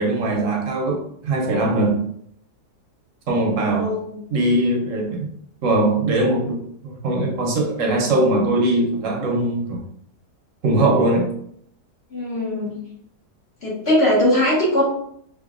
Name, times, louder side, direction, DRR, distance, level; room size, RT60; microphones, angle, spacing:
voice 1, 0.0-2.0 3.3-3.9 4.3-5.3 5.6-9.8 10.6-11.3, right 2 dB, 60° right, 0 dB, 1.0 m, -21 dB
voice 2, 3.7-4.2 12.1-12.7 13.6-14.8, left 1 dB, 40° left, -6 dB, 1.4 m, -20 dB
4.4 x 2.6 x 2.4 m, 0.68 s
omnidirectional pair, 1.7 m